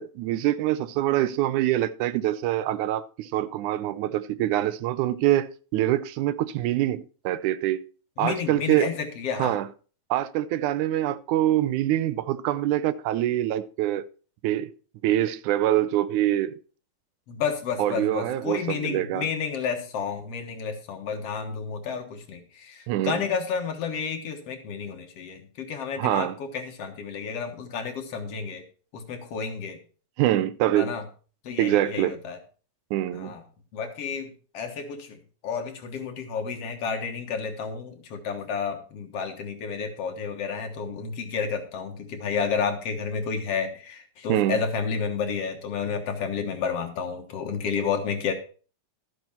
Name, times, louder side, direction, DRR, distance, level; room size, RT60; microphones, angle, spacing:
voice 1, 0.0-7.8 8.2-8.9 9.4-9.7 10.1-14.1 14.4-14.7 15.0-16.6 17.8-19.3 22.9-23.2 26.0-26.4 30.2-31.0 31.6-32.1 32.9-33.3 44.3-44.6, right 13 dB, 90° right, 2.1 m, -25 dB
voice 2, 8.2-9.5 17.3-28.6 28.9-29.8 30.8-31.0 31.4-32.4 33.1-33.4 33.7-48.3, left 6 dB, 60° left, 2.3 m, -31 dB
13.0 x 8.0 x 4.4 m
omnidirectional pair, 3.4 m